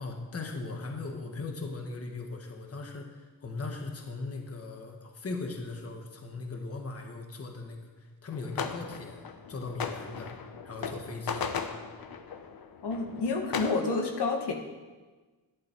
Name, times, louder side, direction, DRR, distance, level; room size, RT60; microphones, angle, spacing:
voice 1, 0.0-10.4 10.6-11.5, left 3 dB, 35° left, 3 dB, 1.3 m, -39 dB
sound 1, 8.3-13.7, left 6 dB, 60° left, 0.9 m, -37 dB
voice 2, 12.8-14.5, left 3 dB, 75° left, 3 dB, 1.4 m, -29 dB
11.5 x 11.0 x 4.5 m, 1.3 s
wide cardioid pair, 160°, 41 cm